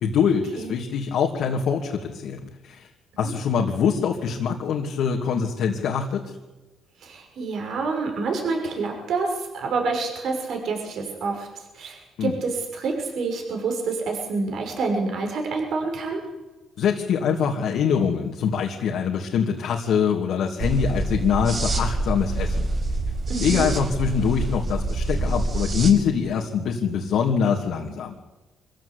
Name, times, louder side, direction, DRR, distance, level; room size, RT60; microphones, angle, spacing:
voice 1, 0.0-2.9 3.2-6.2 12.2-12.3 16.8-22.7 23.4-28.1, left 7 dB, 75° left, 0 dB, 2.8 m, -24 dB
voice 2, 7.0-16.2 23.3-23.7, right 4 dB, 70° right, 2 dB, 6.4 m, -28 dB
sound 1, 20.6-25.9, right 2 dB, 45° right, 5.2 m, -26 dB
25.5 x 15.5 x 8.7 m, 1.1 s
cardioid pair, 90°, 0 cm